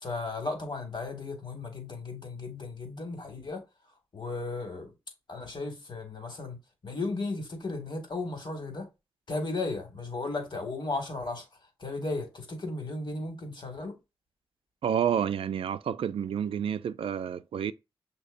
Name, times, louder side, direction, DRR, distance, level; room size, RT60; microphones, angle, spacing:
voice 1, 0.0-3.6 4.1-4.9 5.3-6.6 6.8-8.9 9.3-11.5 11.8-14.0, left 3 dB, 55° left, 1.9 m, -35 dB
voice 2, 14.8-17.7, right 8 dB, 75° right, 0.4 m, -29 dB
6.4 x 2.8 x 2.5 m
cardioid pair, 45°, 10 cm